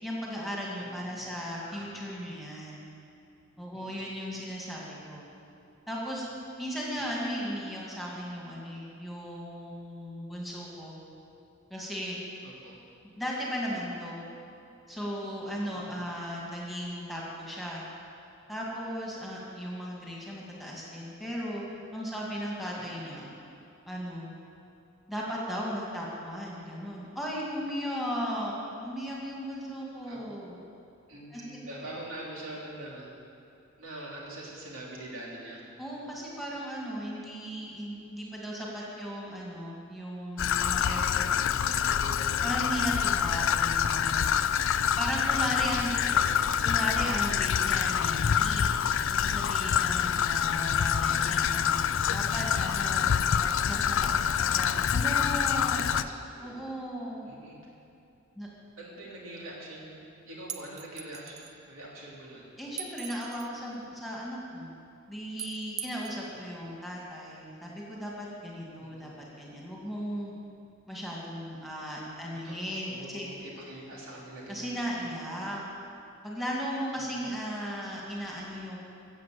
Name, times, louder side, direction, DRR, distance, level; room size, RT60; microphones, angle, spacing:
voice 1, 0.0-2.8 3.6-5.2 5.9-6.2 6.6-10.9 11.7-12.2 13.0-14.2 14.9-17.8 18.5-21.6 21.9-23.3 23.9-24.3 25.1-28.5 28.8-30.6 31.3-31.6 35.8-41.2 42.4-44.4 45.0-45.9 46.6-48.8 49.1-55.8 56.4-57.3 58.4-58.5 62.6-64.7 65.1-70.3 70.9-73.3 74.5-75.6 76.2-78.8, equal, ahead, -5 dB, 2.3 m, -36 dB
voice 2, 0.8-1.4 1.7-2.0 3.7-4.2 7.0-7.1 12.4-12.8 15.7-16.0 22.7-23.1 30.0-30.2 31.1-33.1 33.8-35.6 35.9-36.1 41.2-43.0 45.1-45.4 45.7-47.0 52.8-53.1 55.6-56.5 57.2-57.6 58.8-60.0 60.3-61.4 61.7-62.5 68.8-69.1 72.3-72.6 72.9-74.9 76.9-77.4, right 1 dB, 75° right, -4 dB, 3.0 m, -45 dB
Traffic noise roadway noise / Trickle dribble, 40.4-56.0, left 8 dB, 65° left, 0.4 m, -26 dB
sound 1, 60.5-61.5 62.8-63.5 65.4-66.2, right 9 dB, 35° right, 0.6 m, -40 dB
14.5 x 7.7 x 7.8 m, 2.6 s
head